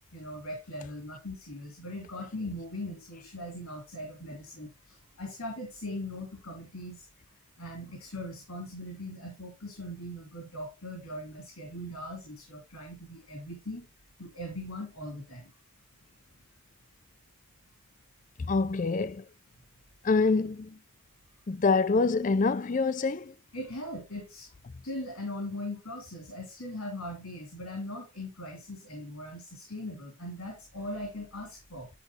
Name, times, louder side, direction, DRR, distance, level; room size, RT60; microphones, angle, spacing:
voice 1, 0.1-7.1 7.6-13.8 14.2-15.5 23.5-24.5 24.8-31.9, left 1 dB, 90° left, 3.0 m, -40 dB
voice 2, 18.4-19.2 20.0-20.8 21.5-23.3, left 4 dB, 35° left, 0.4 m, -26 dB
11.0 x 5.2 x 2.8 m
head